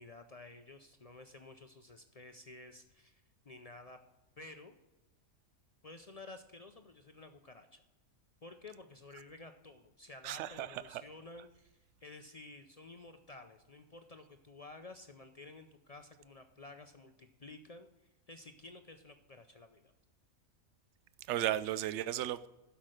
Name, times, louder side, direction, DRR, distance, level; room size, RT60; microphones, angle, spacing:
voice 1, 0.0-4.0 4.4-4.8 5.8-7.8 8.4-17.9 18.3-19.9, left 2 dB, 50° left, 0.4 m, -52 dB
voice 2, 10.2-11.0 21.3-22.5, right 12 dB, 65° right, 0.8 m, -35 dB
12.0 x 5.8 x 6.4 m
omnidirectional pair, 1.4 m